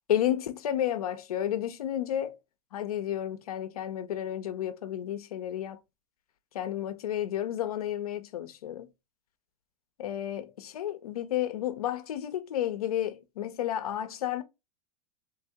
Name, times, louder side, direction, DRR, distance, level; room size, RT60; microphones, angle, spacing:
voice 1, 0.1-2.4 2.7-5.8 6.5-8.9 10.0-14.4, left 11 dB, 90° left, 0.6 m, -31 dB
3.3 x 2.8 x 3.4 m
hypercardioid pair, 125°, 19 cm